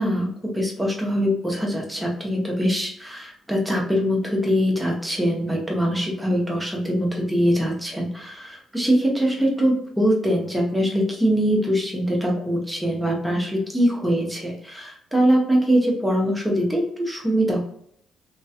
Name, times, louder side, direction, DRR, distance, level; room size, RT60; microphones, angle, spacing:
voice 1, 0.0-17.6, equal, 5° right, -1 dB, 1.0 m, -23 dB
2.9 x 2.8 x 2.4 m, 0.67 s
cardioid pair, 90°, 0 cm